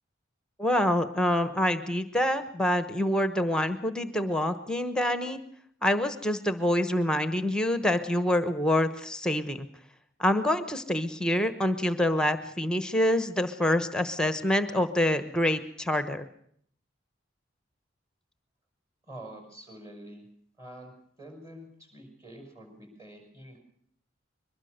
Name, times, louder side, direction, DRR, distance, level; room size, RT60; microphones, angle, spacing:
voice 1, 0.6-5.4 5.8-9.7 10.2-16.3, left 1 dB, 5° left, 10 dB, 1.0 m, -26 dB
voice 2, 19.0-20.3 20.6-20.9 21.2-23.6, right 1 dB, 15° right, 4 dB, 5.9 m, -46 dB
23.0 x 20.5 x 6.7 m, 0.64 s
head